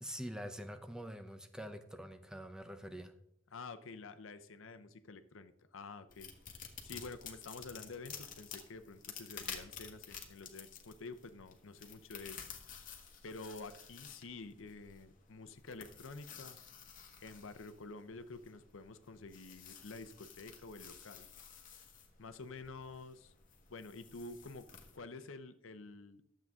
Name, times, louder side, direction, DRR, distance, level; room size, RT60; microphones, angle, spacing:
voice 1, 0.0-3.1, equal, 5° right, 8 dB, 0.5 m, -45 dB
voice 2, 3.5-6.3 6.6-12.5 13.2-16.6 17.2-21.3 22.2-23.3 23.7-24.7 24.9-26.2, left 3 dB, 80° left, 11 dB, 0.7 m, -49 dB
sound 1, 6.1-25.0, left 7 dB, 40° left, 1.2 m, -52 dB
12.0 x 7.6 x 3.6 m, 0.77 s
head